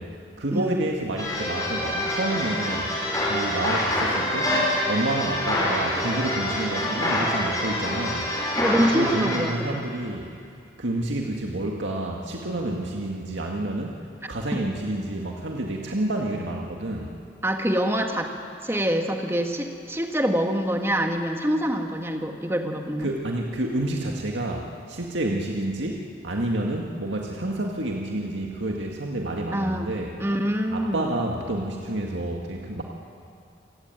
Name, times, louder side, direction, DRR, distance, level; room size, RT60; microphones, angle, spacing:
voice 1, 0.0-2.9 3.2-4.6 4.9-8.3 8.9-10.3 10.8-17.2 23.0-30.1 30.7-32.8, right 1 dB, 85° right, 0 dB, 1.9 m, -29 dB
sound 1, 1.2-9.4, left 1 dB, 20° left, 5.7 m, -26 dB
voice 2, 8.6-9.8 14.5-14.6 17.4-18.3 18.6-23.1 29.5-29.9 30.2-31.1, equal, 15° right, 4 dB, 1.7 m, -25 dB
28.0 x 19.0 x 9.1 m, 2.5 s
head